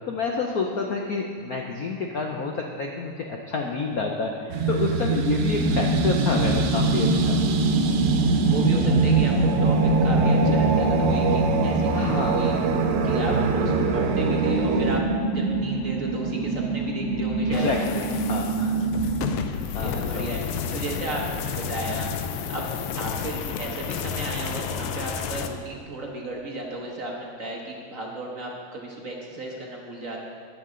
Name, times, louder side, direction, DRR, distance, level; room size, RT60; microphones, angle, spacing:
voice 1, 0.1-7.3 11.9-12.4 17.6-18.8 19.7-20.3, left 4 dB, 65° left, 1 dB, 0.9 m, -28 dB
sound 1, 4.5-15.0, right 4 dB, 85° right, 1.6 m, -24 dB
sound 2, 5.5-19.3, right 2 dB, 10° right, 2.9 m, -26 dB
voice 2, 8.2-12.6 13.0-15.0 15.3-17.7 19.8-22.1 22.5-22.7 23.0-30.2, right 2 dB, 50° right, -1 dB, 1.1 m, -34 dB
sound 3, 17.5-25.5, left 7 dB, 85° left, 1.5 m, -31 dB
13.0 x 9.4 x 3.8 m, 2.3 s
omnidirectional pair, 2.4 m